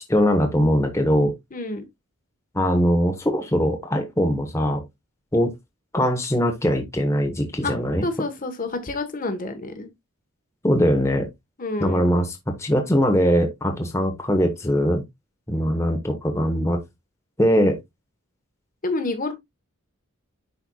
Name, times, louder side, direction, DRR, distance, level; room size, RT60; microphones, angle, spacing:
voice 1, 0.1-1.3 2.5-4.8 5.3-5.5 5.9-8.0 10.6-11.3 11.8-15.0 15.5-16.8 17.4-17.8, equal, 15° left, 1.1 m, -21 dB
voice 2, 1.5-1.8 7.6-7.7 8.0-9.9 11.6-12.0 18.8-19.3, left 2 dB, 40° left, 1.2 m, -28 dB
10.5 x 4.4 x 2.3 m
head